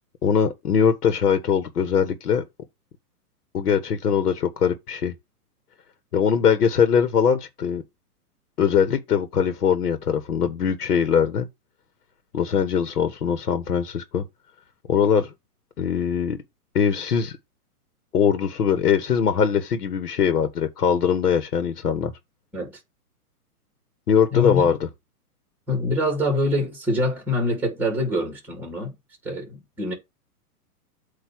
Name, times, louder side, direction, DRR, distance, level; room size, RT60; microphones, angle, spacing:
voice 1, 0.2-2.4 3.5-5.1 6.1-7.8 8.6-11.5 12.3-14.2 14.9-15.3 15.8-16.4 16.8-17.4 18.1-22.1 24.1-24.9, left 7 dB, 75° left, 1.6 m, -21 dB
voice 2, 24.3-24.7 25.7-29.0 29.2-29.9, left 1 dB, 5° right, 2.4 m, -25 dB
8.4 x 3.0 x 6.1 m
hypercardioid pair, 165°, 46 cm